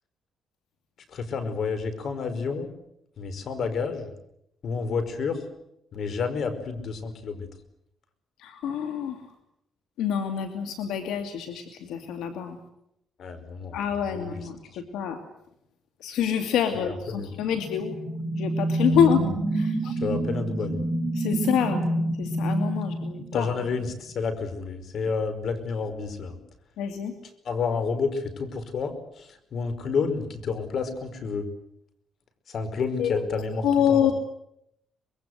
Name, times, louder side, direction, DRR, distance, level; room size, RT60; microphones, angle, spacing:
voice 1, 1.1-2.7 3.2-4.1 4.6-5.4 5.9-7.5 13.2-13.8 14.0-14.8 16.7-17.3 19.1-19.3 19.8-20.8 23.3-26.4 27.4-31.5 32.5-34.1, left 5 dB, 60° left, 11 dB, 5.0 m, -30 dB
voice 2, 8.4-9.2 10.0-12.6 13.7-14.6 14.9-15.2 16.0-17.9 18.4-19.2 19.5-19.9 21.2-21.8 22.2-23.5 26.8-27.1 33.0-33.1 33.6-34.1, left 8 dB, 90° left, 7 dB, 2.5 m, -26 dB
sound 1, 17.4-23.9, right 1 dB, 15° right, 5.9 m, -28 dB
25.5 x 22.5 x 8.1 m, 0.77 s
cardioid pair, 90°, 0 cm